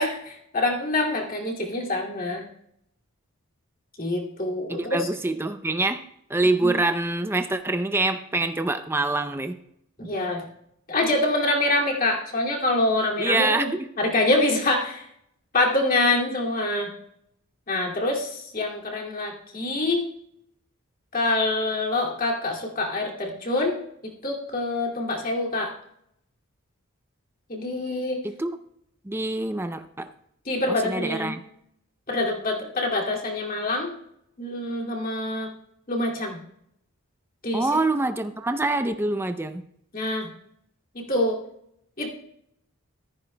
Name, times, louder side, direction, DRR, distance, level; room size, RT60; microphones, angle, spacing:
voice 1, 0.0-2.4 4.0-5.1 6.6-6.8 10.0-10.4 10.9-13.7 14.0-15.0 15.5-16.9 17.7-20.0 21.1-23.8 24.0-25.7 27.5-28.2 30.5-31.3 32.1-33.9 34.4-35.5 35.9-36.4 37.4-37.7 39.9-40.3 40.9-41.4 42.0-42.1, left 2 dB, 40° left, -2 dB, 2.4 m, -25 dB
voice 2, 4.7-6.0 6.3-9.6 13.2-13.9 28.2-28.6 29.0-30.1 30.7-31.4 37.5-39.6, right 2 dB, 10° right, 8 dB, 0.5 m, -25 dB
14.5 x 14.0 x 2.2 m, 0.73 s
head